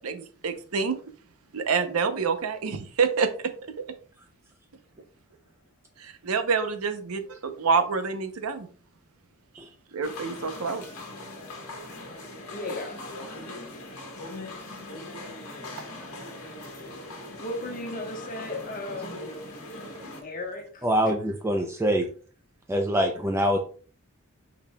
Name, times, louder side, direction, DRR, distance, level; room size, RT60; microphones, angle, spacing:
voice 1, 0.0-1.0 1.5-3.3 6.0-8.7 9.9-10.8, right 5 dB, 75° right, 0.7 m, -27 dB
sound 1, 10.0-20.2, left 2 dB, 80° left, 1.5 m, -40 dB
voice 2, 12.5-13.0 17.1-19.2 20.2-20.9, left 2 dB, 40° left, 1.1 m, -35 dB
voice 3, 20.8-22.1 22.7-23.6, equal, 10° right, 0.4 m, -24 dB
5.6 x 4.2 x 2.2 m
head